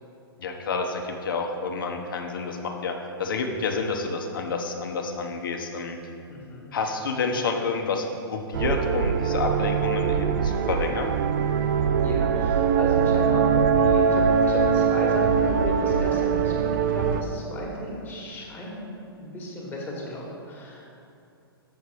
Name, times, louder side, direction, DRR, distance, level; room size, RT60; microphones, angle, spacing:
voice 1, 0.4-2.9 3.2-6.0 6.7-11.1, left 4 dB, 60° left, 3 dB, 0.9 m, -29 dB
voice 2, 6.3-6.6 12.0-20.9, left 1 dB, 15° left, -3 dB, 1.6 m, -35 dB
sound 1, 8.5-17.2, right 6 dB, 45° right, 0.4 m, -22 dB
6.7 x 6.5 x 4.8 m, 2.6 s
figure-of-eight pair, 115°, 13 cm